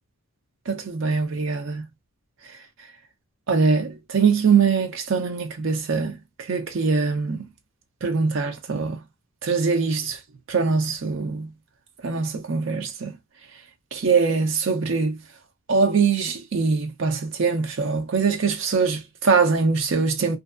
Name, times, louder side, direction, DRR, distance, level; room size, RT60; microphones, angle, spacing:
voice 1, 0.7-1.9 3.5-7.4 8.0-9.0 9.4-10.2 10.5-11.5 12.0-13.1 13.9-15.2 15.7-20.4, right 5 dB, 60° right, 0.5 m, -22 dB
2.5 x 2.2 x 2.4 m
head